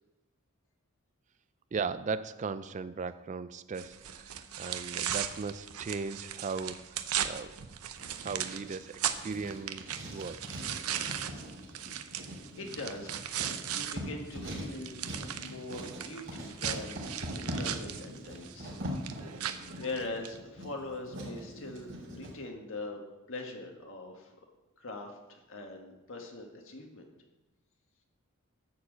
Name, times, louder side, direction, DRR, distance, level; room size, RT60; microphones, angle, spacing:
voice 1, 1.7-7.0 7.2-7.6 8.2-10.4, right 5 dB, 35° right, 14 dB, 0.3 m, -37 dB
sound 1, 3.8-14.0 14.3-20.4, right 10 dB, 80° right, 0.7 m, -37 dB
Writing, 8.0-22.3, equal, 60° right, 3.6 m, -42 dB
voice 2, 11.8-12.2 12.6-15.0 15.4-18.8 19.1-19.4 19.8-23.0 23.3-24.3 24.8-27.1, left 2 dB, 60° left, 2 dB, 1.7 m, -42 dB
11.0 x 4.7 x 7.5 m, 1.1 s
head